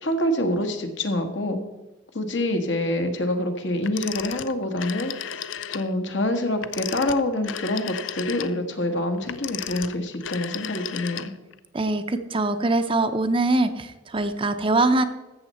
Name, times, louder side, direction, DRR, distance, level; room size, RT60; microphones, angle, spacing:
voice 1, 0.0-1.6 2.1-5.1 5.7-11.3, left 1 dB, 70° left, 6 dB, 1.4 m, -26 dB
Telephone, 3.8-5.9 6.6-11.6, left 9 dB, 90° left, 0.5 m, -35 dB
voice 2, 11.7-15.1, right 2 dB, 30° right, 9 dB, 0.6 m, -23 dB
13.5 x 7.4 x 4.2 m, 1.1 s
head